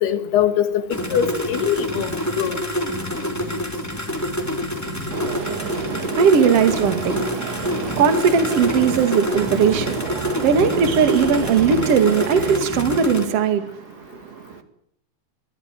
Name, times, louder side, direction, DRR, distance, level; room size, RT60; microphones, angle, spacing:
voice 1, 0.0-2.6, left 9 dB, 65° left, 3.0 m, -22 dB
sound 1, 0.9-13.3, left 1 dB, 5° left, 1.9 m, -27 dB
sound 2, 1.1-2.9 3.3-5.9 6.3-8.9 9.3-11.9 12.3-13.0, right 3 dB, 85° right, 10.5 m, -37 dB
sound 3, 5.1-12.6, right 7 dB, 70° right, 1.6 m, -31 dB
voice 2, 5.3-14.6, right 6 dB, 50° right, 1.9 m, -20 dB
23.0 x 14.0 x 9.1 m
omnidirectional pair, 5.8 m